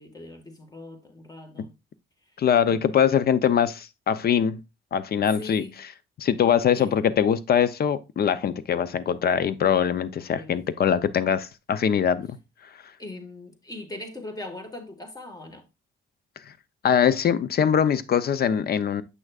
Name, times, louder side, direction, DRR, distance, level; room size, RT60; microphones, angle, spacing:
voice 1, 0.0-1.7 2.7-3.2 5.4-5.7 6.7-7.0 10.3-10.5 13.0-15.7, left 2 dB, 20° left, 1.8 m, -40 dB
voice 2, 2.4-4.6 4.9-5.6 6.2-12.3 16.8-19.0, left 8 dB, 50° left, 0.7 m, -22 dB
7.7 x 6.3 x 2.4 m
cardioid pair, 90°, 20 cm